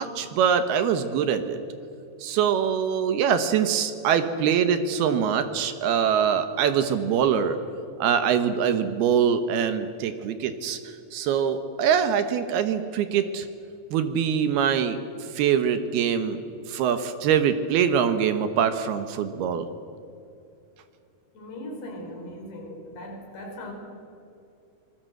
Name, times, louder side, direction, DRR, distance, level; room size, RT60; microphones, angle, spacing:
voice 1, 0.0-1.6 2.2-7.6 8.0-13.5 13.9-15.0 15.3-16.4 16.7-19.7, right 8 dB, 70° right, 10 dB, 2.9 m, -23 dB
voice 2, 21.3-23.7, left 1 dB, 65° left, 2 dB, 6.1 m, -39 dB
25.5 x 21.0 x 7.9 m, 2.6 s
omnidirectional pair, 4.9 m